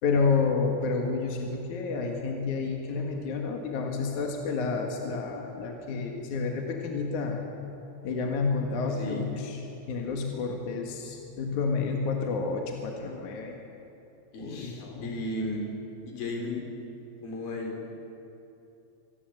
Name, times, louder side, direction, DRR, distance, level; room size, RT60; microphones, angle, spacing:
voice 1, 0.0-7.4 8.0-13.6 14.4-15.1, left 4 dB, 60° left, 2 dB, 3.0 m, -30 dB
voice 2, 8.9-9.2 14.3-15.6 16.1-16.6 17.2-17.8, left 2 dB, 75° left, 1 dB, 5.4 m, -35 dB
25.5 x 18.5 x 8.0 m, 2.9 s
omnidirectional pair, 4.3 m